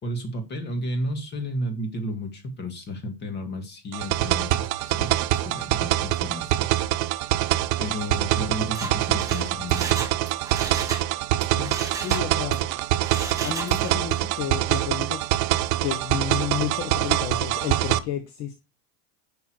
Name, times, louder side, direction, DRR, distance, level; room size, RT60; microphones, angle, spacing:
voice 1, 0.0-6.7 7.8-10.0, equal, 25° left, 7 dB, 1.9 m, -32 dB
sound 1, 3.9-18.0, right 14 dB, 75° right, 0.9 m, -25 dB
Mechanisms, 8.6-11.1 11.4-12.6 13.0-14.1 14.4-14.5, right 4 dB, 10° right, 1.3 m, -34 dB
voice 2, 11.5-12.6 13.4-15.2 15.8-18.6, left 10 dB, 40° left, 7 dB, 1.3 m, -32 dB
10.5 x 5.7 x 4.6 m, 0.26 s
cardioid pair, 170°, 41 cm